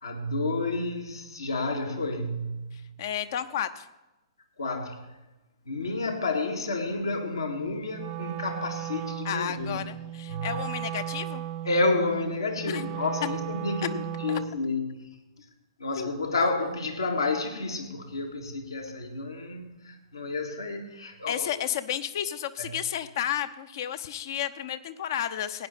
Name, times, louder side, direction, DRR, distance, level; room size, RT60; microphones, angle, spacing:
voice 1, 0.0-2.9 4.6-5.0 5.6-9.8 10.3-10.6 11.6-15.1 15.8-21.5 22.6-22.8, left 3 dB, 75° left, 1.9 m, -30 dB
voice 2, 2.7-3.9 9.2-11.4 12.7-12.8 14.3-14.4 16.0-16.1 21.3-25.7, left 10 dB, 50° left, 0.8 m, -32 dB
Wind instrument woodwind instrument, 7.9-14.6, right 12 dB, 35° right, 0.4 m, -36 dB
17.0 x 9.6 x 4.3 m
figure-of-eight pair, 110°, 2 cm